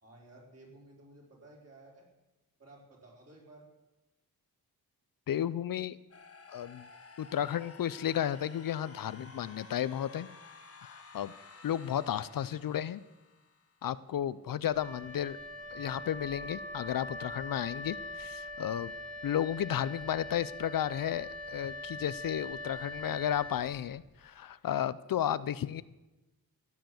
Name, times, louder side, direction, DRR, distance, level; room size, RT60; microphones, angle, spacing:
voice 1, 0.0-2.1 2.6-3.7, right 2 dB, 40° right, -2 dB, 4.5 m, -55 dB
voice 2, 5.3-6.0 6.5-6.8 7.2-10.3 10.8-11.3 11.6-13.0 13.8-15.4 15.7-18.9 19.2-25.8, left 10 dB, 65° left, 17 dB, 0.5 m, -33 dB
sound 1, 6.1-14.0, left 4 dB, 40° left, 1.5 m, -53 dB
Wind instrument woodwind instrument, 14.7-24.2, left 1 dB, 20° right, 1.9 m, -42 dB
15.0 x 9.4 x 7.7 m, 1.1 s
wide cardioid pair, 150°, 37 cm